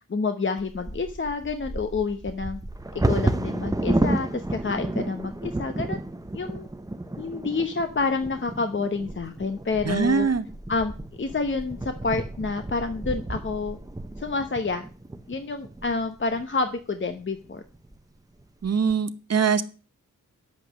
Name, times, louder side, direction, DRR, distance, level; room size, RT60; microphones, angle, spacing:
voice 1, 0.1-2.6 2.9-6.0 6.3-6.7 7.2-10.3 10.7-10.9 11.2-13.8 14.2-14.9 15.3-17.6, left 4 dB, 35° left, 7 dB, 1.0 m, -28 dB
Bird vocalization bird call bird song / Wind / Thunder, 0.6-16.5 17.1-17.2 17.5-17.9 18.4-18.9, right 1 dB, 10° right, 0.8 m, -31 dB
voice 2, 9.8-10.4 18.6-19.6, right 6 dB, 50° right, 11 dB, 1.1 m, -22 dB
10.0 x 8.5 x 6.3 m, 0.37 s
wide cardioid pair, 110°, 33 cm